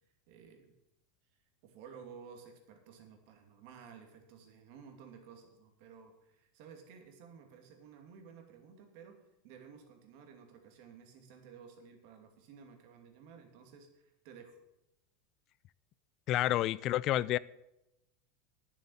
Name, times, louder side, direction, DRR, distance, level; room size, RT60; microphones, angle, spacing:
voice 1, 0.3-0.7 1.6-14.5, right 6 dB, 60° right, 2.6 m, -54 dB
voice 2, 16.3-17.4, left 14 dB, 45° left, 0.3 m, -29 dB
9.7 x 7.2 x 8.6 m
supercardioid pair, 130°, 0 cm